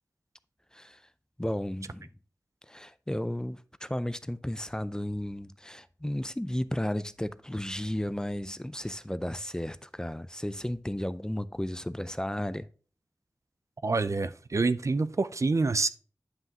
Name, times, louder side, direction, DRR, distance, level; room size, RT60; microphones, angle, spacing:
voice 1, 1.4-2.1 2.7-12.7, left 1 dB, 10° left, 0.4 m, -34 dB
voice 2, 13.8-15.9, right 3 dB, 55° right, 0.5 m, -27 dB
9.5 x 5.6 x 2.8 m
wide cardioid pair, 60°, 6 cm